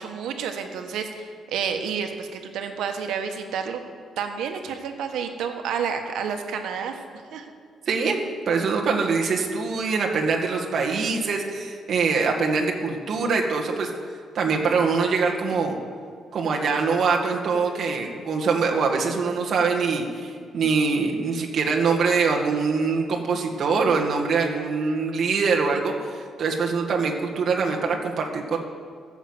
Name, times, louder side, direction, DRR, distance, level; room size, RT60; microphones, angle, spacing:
voice 1, 0.0-3.8 4.2-7.0 7.3-7.5, right 7 dB, 90° right, 5 dB, 1.4 m, -30 dB
voice 2, 7.9-8.2 8.5-13.9 14.3-15.8 16.3-28.6, right 4 dB, 45° right, 0 dB, 1.7 m, -23 dB
13.5 x 7.4 x 8.0 m, 2.1 s
cardioid pair, 170°, 0 cm